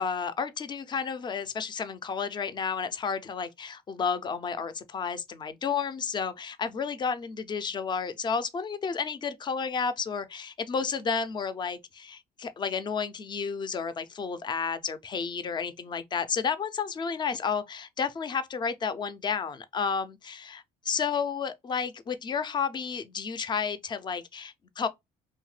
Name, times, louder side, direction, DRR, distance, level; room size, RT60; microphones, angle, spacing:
voice 1, 0.0-24.9, left 6 dB, 25° left, 0.4 m, -31 dB
2.8 x 2.2 x 3.1 m
cardioid pair, 110°, 17 cm